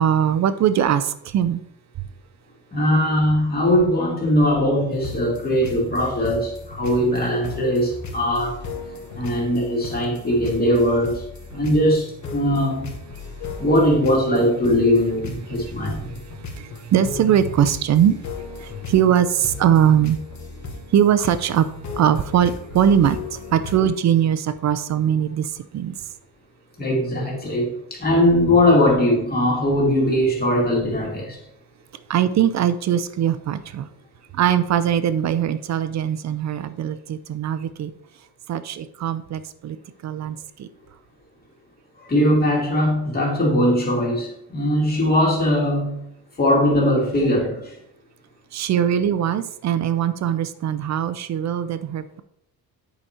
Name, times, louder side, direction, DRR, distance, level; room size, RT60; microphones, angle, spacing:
voice 1, 0.0-1.6 16.6-18.2 18.6-20.2 20.9-21.7 22.0-25.9 32.1-33.9 34.3-37.9 38.5-39.8 40.0-40.7 48.5-52.2, right 9 dB, 45° right, 13 dB, 0.5 m, -21 dB
voice 2, 2.7-8.6 9.1-11.2 11.5-12.9 13.6-16.2 18.7-18.8 26.8-31.4 42.0-46.0 46.4-47.8, left 1 dB, 25° left, -2 dB, 2.2 m, -20 dB
sound 1, 4.9-23.7, left 3 dB, 45° left, 1.4 m, -36 dB
9.0 x 5.1 x 4.3 m, 0.77 s
cardioid pair, 175°, 38 cm